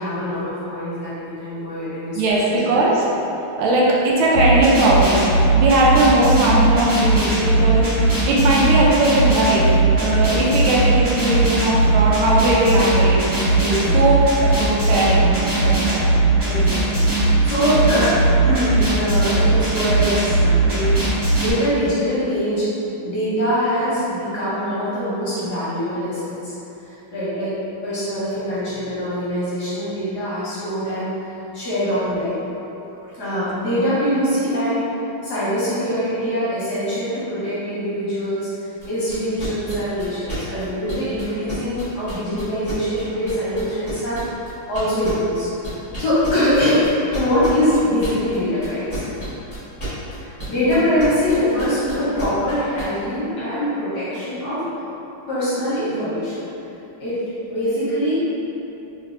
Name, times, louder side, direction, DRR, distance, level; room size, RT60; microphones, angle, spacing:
voice 1, 0.0-2.9 10.3-10.4 13.6-14.0 16.4-18.2 18.4-21.1 21.4-22.7 23.0-26.5 26.8-27.5 27.8-32.4 33.1-34.8 35.2-45.5 46.0-46.8 47.1-49.1 50.1-54.6 55.3-56.4 57.0-57.2 57.5-58.2, equal, 60° left, -11 dB, 1.3 m, -23 dB
voice 2, 2.1-3.0 3.6-5.2 5.5-7.9 8.3-9.7 10.0-13.2 13.9-16.1, right 1 dB, 80° right, -5 dB, 1.4 m, -18 dB
sound 1, 4.3-21.5, right 2 dB, 55° right, 1.7 m, -18 dB
sound 2, 38.8-52.8, right 2 dB, 15° left, 0.9 m, -31 dB
3.3 x 3.1 x 2.5 m, 3.0 s
omnidirectional pair, 2.4 m